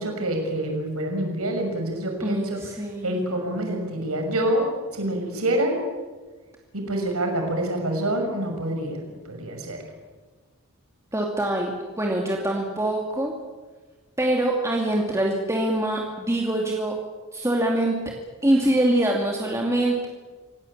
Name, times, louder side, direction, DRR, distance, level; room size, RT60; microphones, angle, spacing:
voice 1, 0.0-2.8 3.0-4.7 4.9-5.8 6.7-9.0 9.3-9.8, right 1 dB, 90° right, 3 dB, 5.9 m, -26 dB
voice 2, 2.2-3.2 11.1-11.7 12.0-13.3 14.2-16.9 17.3-18.0 18.4-20.1, right 1 dB, 15° right, -1 dB, 2.5 m, -24 dB
26.0 x 18.5 x 8.7 m, 1.3 s
head